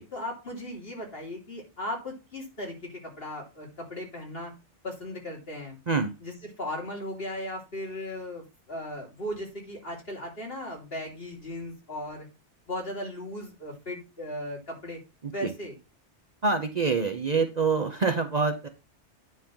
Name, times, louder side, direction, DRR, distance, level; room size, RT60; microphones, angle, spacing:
voice 1, 0.1-4.5 4.8-5.8 6.2-12.3 12.7-15.0 15.3-15.7, left 1 dB, 55° left, -1 dB, 3.1 m, -37 dB
voice 2, 16.4-18.7, right 4 dB, 40° right, 5 dB, 0.8 m, -26 dB
9.5 x 3.4 x 5.7 m, 0.28 s
omnidirectional pair, 1.2 m